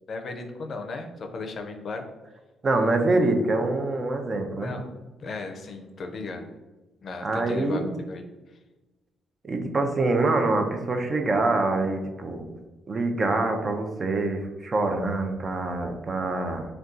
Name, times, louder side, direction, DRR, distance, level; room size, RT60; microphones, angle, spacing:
voice 1, 0.1-2.1 4.6-4.8 5.2-6.5 7.0-8.2, left 3 dB, 50° left, 4 dB, 0.4 m, -35 dB
voice 2, 2.6-4.7 7.2-7.9 9.4-12.4 12.9-16.7, right 2 dB, 35° right, 4 dB, 0.5 m, -25 dB
2.6 x 2.3 x 3.6 m, 1.1 s
cardioid pair, 90°, 0 cm